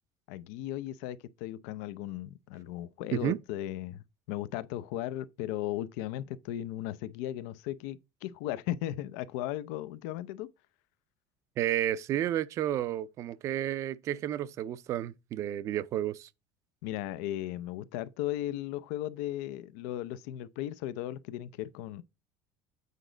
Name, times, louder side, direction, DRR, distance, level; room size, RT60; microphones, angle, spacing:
voice 1, 0.3-10.5 16.8-22.0, left 13 dB, 90° left, 0.5 m, -36 dB
voice 2, 11.6-16.3, right 12 dB, 35° right, 0.4 m, -31 dB
8.2 x 5.0 x 3.9 m
cardioid pair, 175°, 9 cm